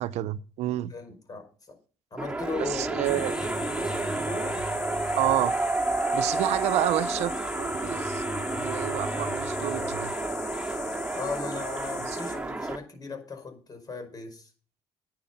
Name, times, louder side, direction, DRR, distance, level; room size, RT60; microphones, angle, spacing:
voice 1, 0.0-0.9 2.6-3.3 5.1-5.6 6.1-8.2 8.5-10.1 12.1-12.4, right 15 dB, 85° right, 0.6 m, -29 dB
voice 2, 0.9-1.5 2.1-3.9 4.3-4.6 6.3-6.4 11.1-14.5, left 3 dB, 35° left, 5.2 m, -37 dB
sound 1, 2.2-12.8, right 2 dB, 10° right, 2.1 m, -30 dB
sound 2, 3.0-12.4, left 9 dB, 85° left, 1.9 m, -41 dB
10.5 x 9.4 x 5.5 m
cardioid pair, 95°, 11 cm